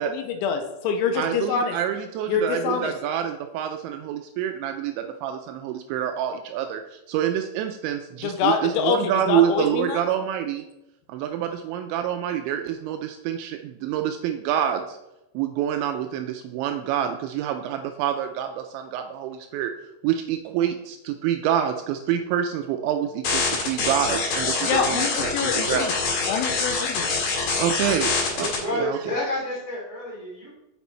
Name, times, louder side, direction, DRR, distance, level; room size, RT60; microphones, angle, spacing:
voice 1, 0.0-1.8 2.3-2.9 8.2-10.0 24.4-25.9 26.3-27.1, left 5 dB, 85° left, 6 dB, 3.1 m, -25 dB
voice 2, 1.2-10.7 11.1-15.0 15.3-19.7 20.0-25.9 27.6-29.0, right 10 dB, 85° right, 6 dB, 2.7 m, -27 dB
sound 1, 23.2-28.6, left 4 dB, 55° left, 3.4 m, -25 dB
voice 3, 28.3-30.5, left 1 dB, 20° right, -5 dB, 0.5 m, -29 dB
7.0 x 6.1 x 4.2 m, 0.92 s
omnidirectional pair, 5.6 m